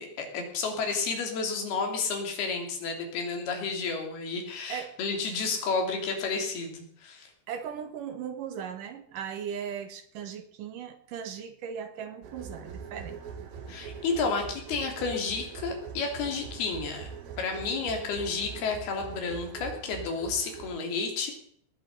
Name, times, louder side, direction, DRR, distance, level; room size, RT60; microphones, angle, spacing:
voice 1, 0.0-7.3 13.7-17.1 17.4-21.3, left 4 dB, 65° left, 3 dB, 4.8 m, -31 dB
voice 2, 7.5-13.2, right 8 dB, 65° right, 9 dB, 2.4 m, -38 dB
sound 1, 12.2-20.8, right 6 dB, 80° right, 4.2 m, -42 dB
20.0 x 7.9 x 6.5 m, 0.66 s
omnidirectional pair, 5.0 m